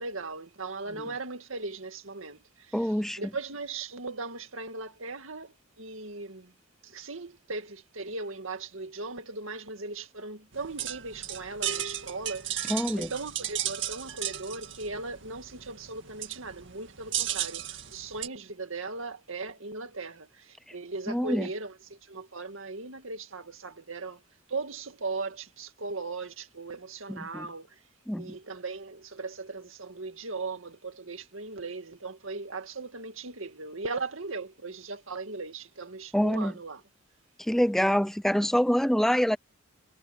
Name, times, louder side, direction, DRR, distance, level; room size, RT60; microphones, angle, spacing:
voice 1, 0.0-6.5 6.8-24.2 24.5-27.8 28.2-36.8, right 3 dB, 80° right, 2.1 m, -38 dB
voice 2, 2.7-3.2 12.7-13.1 21.1-21.5 27.1-27.5 28.1-28.3 36.1-36.5 37.5-39.4, equal, ahead, 0.3 m, -25 dB
sound 1, 10.5-18.3, right 11 dB, 60° right, 2.1 m, -35 dB
head